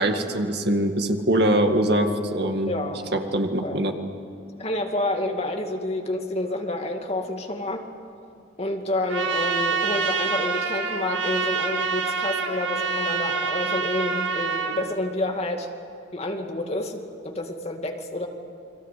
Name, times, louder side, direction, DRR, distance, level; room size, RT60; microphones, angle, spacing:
voice 1, 0.0-2.7 3.1-3.9, right 1 dB, 60° right, 5 dB, 2.1 m, -23 dB
voice 2, 2.7-3.2 3.6-3.8 4.6-7.8 8.6-15.7 16.1-18.3, left 1 dB, 35° left, 3 dB, 2.3 m, -29 dB
Trumpet, 9.1-14.9, right 5 dB, 75° right, 2.2 m, -26 dB
29.5 x 22.5 x 8.5 m, 2.6 s
head